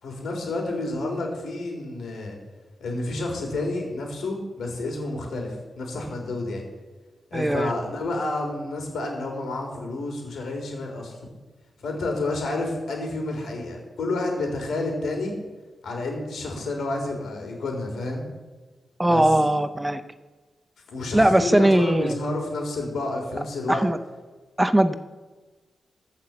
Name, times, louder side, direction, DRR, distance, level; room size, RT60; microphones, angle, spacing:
voice 1, 0.0-2.4 2.8-6.6 7.3-11.2 11.8-15.4 15.8-18.2 19.1-19.3 20.9-23.9, left 2 dB, 80° left, 2 dB, 3.7 m, -30 dB
voice 2, 7.3-7.7 19.0-20.0 21.1-22.1 23.7-24.0 24.6-24.9, right 1 dB, 10° right, 11 dB, 0.7 m, -20 dB
14.5 x 5.9 x 7.2 m, 1.3 s
cardioid pair, 70°, 0 cm